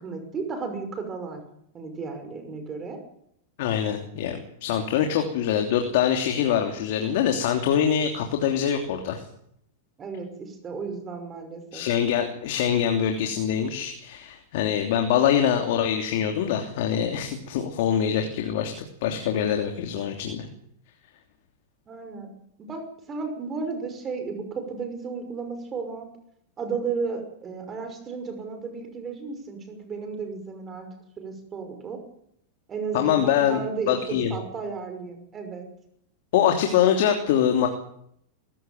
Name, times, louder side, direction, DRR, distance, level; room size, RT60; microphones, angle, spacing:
voice 1, 0.0-1.4 1.7-3.0 10.0-11.8 21.9-22.3 22.6-26.1 26.6-30.9 31.2-32.0 32.7-35.7, right 5 dB, 25° right, 6 dB, 5.9 m, -34 dB
voice 2, 3.6-9.2 11.7-18.7 19.0-20.5 32.9-33.6 33.9-34.3 36.3-37.7, left 9 dB, 65° left, 4 dB, 3.1 m, -24 dB
23.0 x 15.5 x 9.3 m, 0.71 s
supercardioid pair, 135°, 0 cm